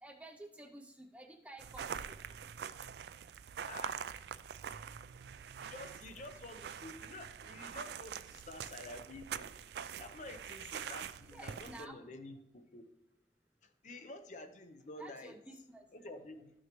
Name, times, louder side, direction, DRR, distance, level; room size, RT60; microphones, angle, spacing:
voice 1, 0.0-2.1 5.6-5.7 11.3-12.0 15.0-16.1, right 1 dB, 5° right, 5 dB, 0.5 m, -52 dB
sound 1, 1.6-11.9, right 8 dB, 70° right, 0.3 m, -45 dB
voice 2, 3.7-4.1 5.6-9.6 10.0-12.8 13.6-15.4 15.9-16.5, left 2 dB, 40° left, 8 dB, 0.7 m, -50 dB
13.0 x 6.2 x 3.0 m, 0.84 s
head